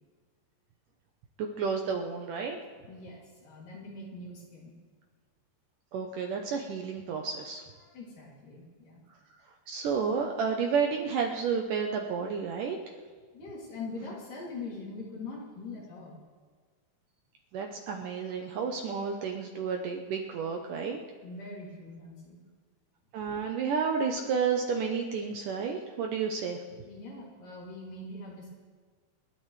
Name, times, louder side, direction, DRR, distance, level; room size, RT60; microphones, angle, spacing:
voice 1, 1.4-2.6 5.9-7.6 9.7-12.8 17.5-21.0 23.1-26.6, right 6 dB, 70° right, 3 dB, 2.1 m, -31 dB
voice 2, 2.7-4.7 7.8-9.0 13.3-16.2 21.2-22.4 26.9-28.6, left 3 dB, 60° left, -4 dB, 4.4 m, -43 dB
28.5 x 12.0 x 3.3 m, 1.5 s
omnidirectional pair, 4.5 m